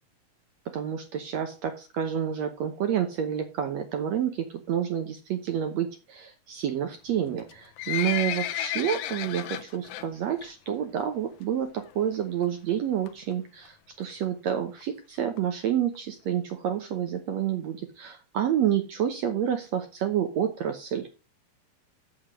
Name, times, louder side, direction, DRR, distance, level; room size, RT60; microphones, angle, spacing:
voice 1, 0.7-21.1, right 9 dB, 70° right, 5 dB, 1.7 m, -29 dB
Livestock farm animals working animals, 7.4-10.1 10.4-10.7 11.0-11.1 11.8-11.9 12.1-12.2 12.4-12.5 13.1-13.3 13.9-14.0 14.2-14.3 14.5-14.6 14.8-14.9 15.4-15.5 15.9-16.0 16.5-16.6, left 13 dB, 75° left, 1.9 m, -32 dB
7.9 x 6.5 x 6.2 m, 0.32 s
omnidirectional pair, 4.1 m